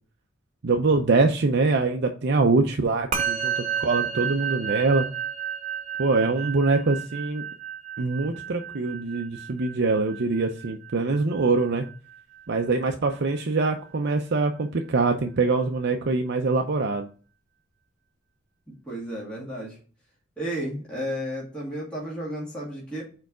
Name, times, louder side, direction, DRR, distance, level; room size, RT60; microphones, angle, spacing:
voice 1, 0.6-5.1 6.0-7.4 8.0-11.9 12.5-17.1, right 3 dB, 55° right, 4 dB, 0.5 m, -24 dB
Musical instrument, 3.1-12.7, right 8 dB, 35° right, 1.7 m, -32 dB
voice 2, 18.9-19.8 20.4-23.0, equal, 5° left, -8 dB, 2.2 m, -32 dB
4.6 x 4.6 x 6.0 m, 0.40 s
head